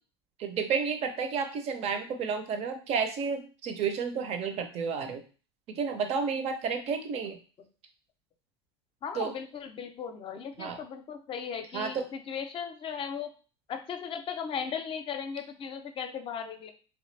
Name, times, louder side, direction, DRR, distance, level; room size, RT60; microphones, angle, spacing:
voice 1, 0.4-5.2 5.7-7.4 9.1-9.3 10.6-10.8 11.7-12.1, right 6 dB, 45° right, 6 dB, 0.7 m, -31 dB
voice 2, 9.0-13.3 13.7-16.7, left 7 dB, 40° left, 7 dB, 0.6 m, -37 dB
3.0 x 2.4 x 3.2 m, 0.37 s
hypercardioid pair, 85°, 15 cm